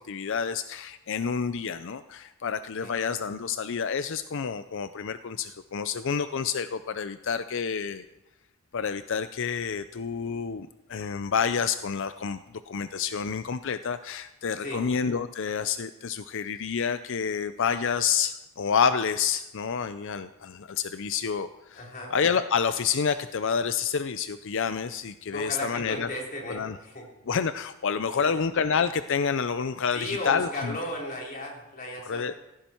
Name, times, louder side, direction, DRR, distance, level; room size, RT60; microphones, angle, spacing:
voice 1, 0.1-2.0 2.4-6.7 6.9-8.0 8.7-10.6 10.9-12.4 12.7-18.3 18.6-20.3 20.9-21.5 22.1-26.1 26.5-26.7 27.3-30.8 32.1-32.3, left 6 dB, 55° left, 12 dB, 0.5 m, -28 dB
voice 2, 21.7-22.1 25.3-27.0 28.1-28.3 29.9-32.3, left 1 dB, 40° left, -2 dB, 3.9 m, -35 dB
16.5 x 15.0 x 4.5 m, 0.95 s
head